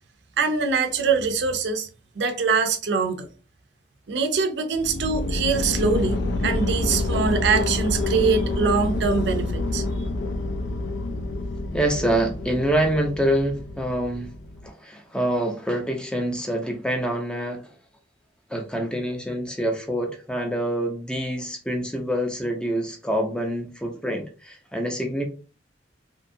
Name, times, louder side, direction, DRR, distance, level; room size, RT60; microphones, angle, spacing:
voice 1, 0.4-1.9 2.2-3.3 4.1-6.2 6.4-9.8, right 5 dB, 70° right, 0.5 m, -23 dB
sound 1, 4.7-14.7, left 2 dB, 90° left, 0.4 m, -27 dB
voice 2, 11.7-14.3 14.6-17.7 18.5-25.2, right 1 dB, 5° left, 0.5 m, -26 dB
2.7 x 2.3 x 2.6 m
head